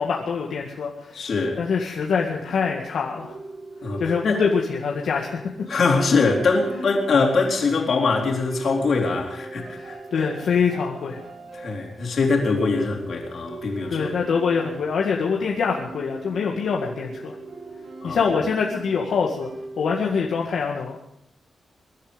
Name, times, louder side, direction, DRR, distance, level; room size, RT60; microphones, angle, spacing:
voice 1, 0.0-1.2 1.6-3.4 4.0-5.3 9.8-11.2 13.9-17.4 18.0-19.5 19.8-21.0, left 5 dB, 80° left, -1 dB, 2.0 m, -24 dB
voice 2, 1.1-1.6 3.8-4.4 5.7-10.3 11.5-14.1 18.0-18.2, left 4 dB, 55° left, 1 dB, 3.9 m, -23 dB
sound 1, 2.4-20.4, right 3 dB, 80° right, 6.7 m, -39 dB
23.0 x 11.5 x 5.3 m, 0.77 s
wide cardioid pair, 150°, 0 cm